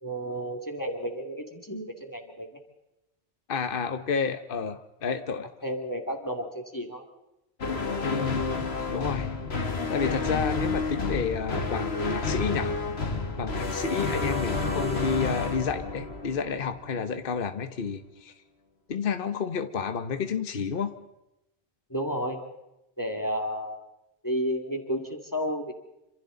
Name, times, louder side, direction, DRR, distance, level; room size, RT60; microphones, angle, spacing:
voice 1, 0.0-2.5 5.6-7.1 14.1-14.4 21.9-22.4 23.0-23.8 24.2-25.7, equal, 20° left, 3 dB, 2.3 m, -32 dB
voice 2, 3.5-5.5 8.0-8.5 8.9-9.3 9.9-12.8 13.4-18.3 18.9-20.9, left 6 dB, 60° left, 8 dB, 1.1 m, -30 dB
sound 1, 7.6-17.0, left 3 dB, 75° left, 2.0 m, -30 dB
27.5 x 26.0 x 3.9 m, 0.90 s
omnidirectional pair, 1.1 m